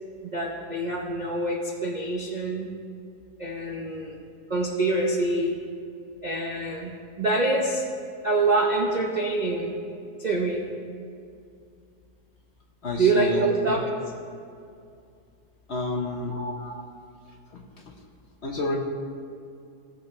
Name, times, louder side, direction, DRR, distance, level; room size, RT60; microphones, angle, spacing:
voice 1, 0.3-2.7 3.4-4.2 4.5-5.6 6.2-6.9 7.2-7.9 8.2-9.7 10.2-10.7 13.0-13.9 16.3-16.8, right 2 dB, 45° right, -1 dB, 0.6 m, -25 dB
voice 2, 12.8-13.4 13.7-13.8 15.7-16.3 17.5-17.6 18.4-18.8, left 2 dB, 45° left, 0 dB, 1.1 m, -29 dB
18.0 x 6.6 x 3.2 m, 2.4 s
omnidirectional pair, 1.8 m